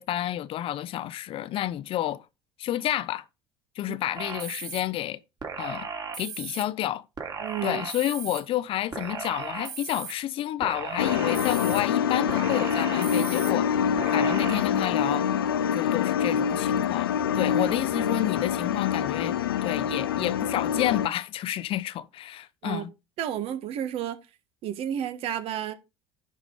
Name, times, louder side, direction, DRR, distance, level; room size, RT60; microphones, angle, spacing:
voice 1, 0.0-2.2 2.6-3.2 3.8-5.2 5.6-5.9 6.2-7.0 7.6-13.8 14.1-15.3 15.7-22.9, left 13 dB, 50° left, 0.7 m, -30 dB
sound 1, 4.2-4.8 5.4-6.6 7.2-8.4 8.9-10.1 10.6-11.8 12.3-13.5 14.0-14.6, right 5 dB, 35° right, 3.1 m, -36 dB
voice 2, 7.4-7.8 22.6-22.8 23.2-24.2 24.6-25.7, right 10 dB, 55° right, 1.6 m, -31 dB
sound 2, 11.0-21.1, left 8 dB, 85° left, 0.6 m, -26 dB
11.0 x 4.8 x 5.3 m
hypercardioid pair, 70°, 12 cm